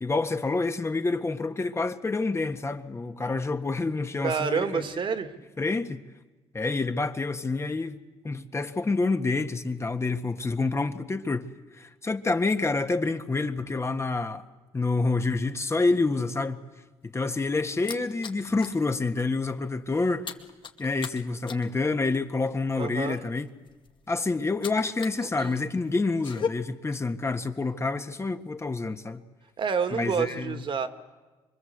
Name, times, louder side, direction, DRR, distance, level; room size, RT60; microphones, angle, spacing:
voice 1, 0.0-4.9 5.6-6.0 6.5-8.0 8.2-11.5 11.8-14.4 14.7-16.6 17.0-20.3 20.8-23.5 24.1-29.2 29.9-30.6, left 3 dB, 25° left, 1.6 m, -28 dB
voice 2, 4.2-5.3 22.8-23.2 25.4-25.6 29.6-30.9, right 6 dB, 50° right, 2.3 m, -28 dB
sound 1, 17.0-18.8 19.2-19.4 19.7-25.2 25.5-26.5, left 6 dB, 50° left, 2.3 m, -38 dB
25.0 x 23.0 x 8.1 m
supercardioid pair, 70°, 11 cm